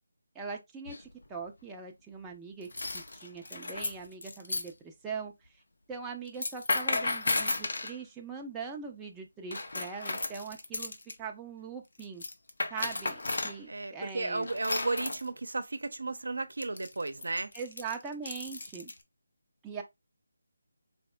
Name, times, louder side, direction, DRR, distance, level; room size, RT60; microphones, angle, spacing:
voice 1, 0.3-2.7 2.9-5.3 5.9-12.2 12.7-14.5 17.5-18.9 19.6-19.8, right 5 dB, 10° right, 0.6 m, -41 dB
sound 1, 0.9-1.3 2.6-4.7 6.3-8.0 9.5-11.1 12.0-13.6 14.4-15.3 16.6-19.0, left 2 dB, 70° left, 0.9 m, -34 dB
voice 2, 13.7-17.5, right 3 dB, 80° right, 0.7 m, -34 dB
4.3 x 3.4 x 2.2 m
figure-of-eight pair, 160°, 0 cm